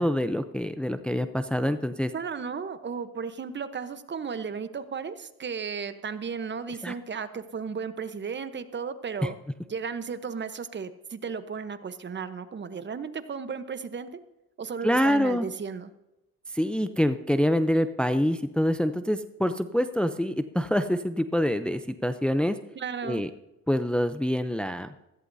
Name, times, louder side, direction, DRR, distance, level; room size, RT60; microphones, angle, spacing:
voice 1, 0.0-2.1 6.7-6.9 9.2-9.3 14.8-15.5 16.6-22.6 23.0-23.3 23.7-24.9, equal, 5° left, 9 dB, 0.6 m, -26 dB
voice 2, 2.1-9.4 9.7-14.1 14.6-15.9 22.7-23.2, right 6 dB, 35° right, 11 dB, 1.0 m, -34 dB
16.0 x 14.5 x 2.7 m, 0.95 s
cardioid pair, 90°, 30 cm